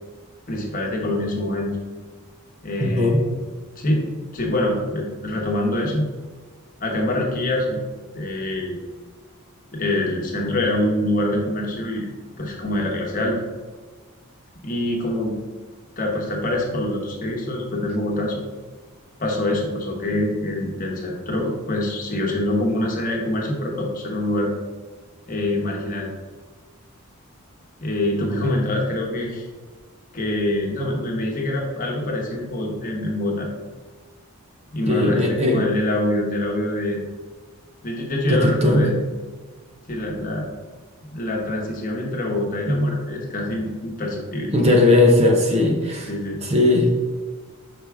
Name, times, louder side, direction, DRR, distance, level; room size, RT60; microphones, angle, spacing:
voice 1, 0.5-1.8 2.6-3.3 3.8-4.0 4.3-6.1 6.8-7.8 8.1-8.8 9.7-12.1 12.4-13.4 14.6-15.4 16.0-18.4 19.2-24.5 25.3-26.1 27.8-29.4 30.1-33.5 34.7-37.0 37.8-39.0 39.9-40.5 41.1-44.5 46.1-46.4, left 1 dB, 40° left, -1 dB, 1.1 m, -25 dB
voice 2, 2.8-3.2 34.9-35.6 38.3-38.9 42.7-42.9 44.5-46.1 46.4-46.9, left 2 dB, 30° right, 1 dB, 0.6 m, -18 dB
6.0 x 4.8 x 3.4 m, 1.4 s
head